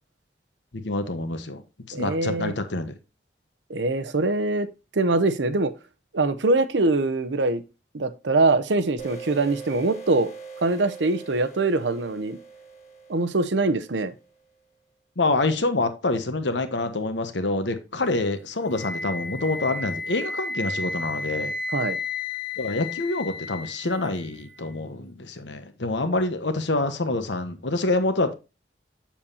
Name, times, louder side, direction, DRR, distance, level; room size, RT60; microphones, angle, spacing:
voice 1, 0.8-1.6 1.9-2.9 15.2-21.5 22.6-28.3, left 2 dB, 90° left, 1.1 m, -26 dB
voice 2, 1.9-2.5 3.7-4.7 4.9-5.7 6.1-7.6 7.9-10.3 10.6-12.4 13.1-14.1 21.7-22.0, right 2 dB, 85° right, 0.8 m, -23 dB
sound 1, 9.0-14.3, right 5 dB, 35° left, 1.5 m, -42 dB
Wind instrument woodwind instrument, 18.7-24.7, left 3 dB, 60° left, 1.4 m, -33 dB
7.2 x 7.0 x 2.7 m
head